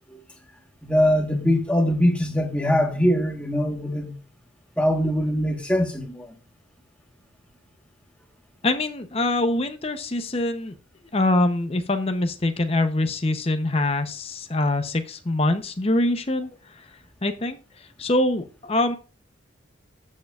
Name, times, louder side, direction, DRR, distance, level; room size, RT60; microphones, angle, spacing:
voice 1, 0.8-4.1 4.8-6.4, equal, 5° left, 1.2 m, -22 dB
voice 2, 8.6-10.8 11.1-16.5 17.2-17.6 18.0-19.0, left 2 dB, 30° left, 0.6 m, -24 dB
13.5 x 6.5 x 2.3 m
head